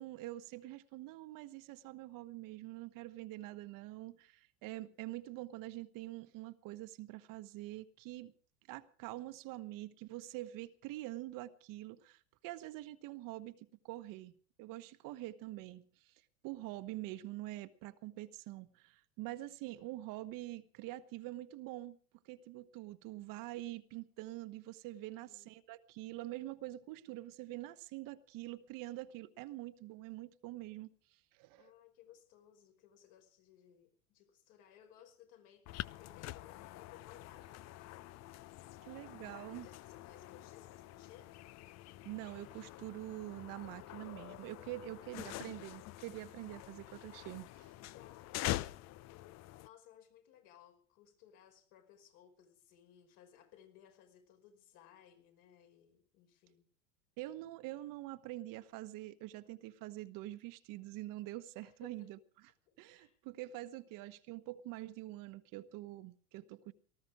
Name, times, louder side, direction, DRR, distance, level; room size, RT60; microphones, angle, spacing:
voice 1, 0.0-8.3 8.7-14.3 14.6-16.1 16.4-22.0 22.2-30.9 31.3-31.7 38.8-39.7 42.0-47.7 57.2-62.5 62.8-66.7, right 16 dB, 50° right, 1.2 m, -45 dB
voice 2, 24.9-25.5 31.6-37.7 39.5-41.4 44.8-46.0 47.7-48.9 49.6-56.7 61.6-62.1 62.7-63.2, left 10 dB, 60° left, 5.3 m, -62 dB
sound 1, 35.7-49.7, left 16 dB, 40° left, 0.7 m, -46 dB
19.0 x 14.0 x 4.9 m
hypercardioid pair, 100°, 43 cm